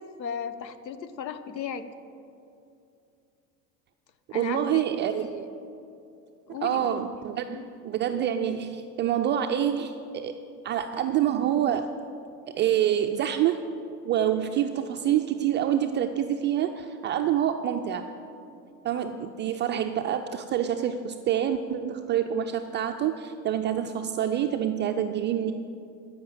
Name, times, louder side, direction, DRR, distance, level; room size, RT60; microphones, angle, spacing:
voice 1, 0.0-1.9 4.3-4.9 6.5-7.0 7.5-7.7, left 7 dB, 85° left, 12 dB, 0.8 m, -36 dB
voice 2, 4.3-5.5 6.6-10.3 10.6-11.9 12.5-13.6 14.0-18.1 18.8-25.5, right 10 dB, 25° right, 6 dB, 0.3 m, -27 dB
14.0 x 5.7 x 8.8 m, 2.7 s
figure-of-eight pair, 75°, 50 cm